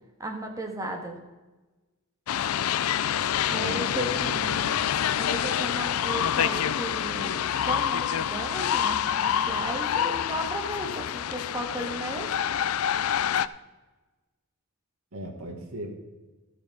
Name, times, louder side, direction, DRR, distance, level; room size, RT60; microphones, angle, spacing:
voice 1, 0.2-1.2 3.5-4.5 5.2-12.3, right 1 dB, 15° right, 2 dB, 1.6 m, -35 dB
sound 1, 2.3-13.5, left 9 dB, 85° left, 0.4 m, -27 dB
voice 2, 3.4-4.9 15.1-15.9, right 1 dB, 80° right, 1 dB, 1.6 m, -37 dB
13.5 x 6.8 x 5.3 m, 1.2 s
head